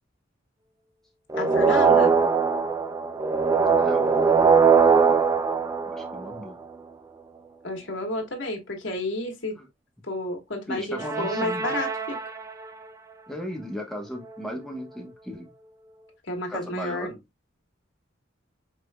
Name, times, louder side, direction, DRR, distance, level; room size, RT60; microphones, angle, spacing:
sound 1, 1.3-6.6 11.0-12.6, right 5 dB, 15° right, 0.4 m, -21 dB
voice 1, 1.4-2.2 7.6-9.5 10.1-12.2 16.3-17.1, left 1 dB, 65° left, 1.5 m, -31 dB
voice 2, 3.7-4.1 5.8-6.6 9.6-9.7 10.7-11.8 13.3-15.5 16.5-17.2, equal, ahead, 1.0 m, -36 dB
4.8 x 3.8 x 2.2 m
head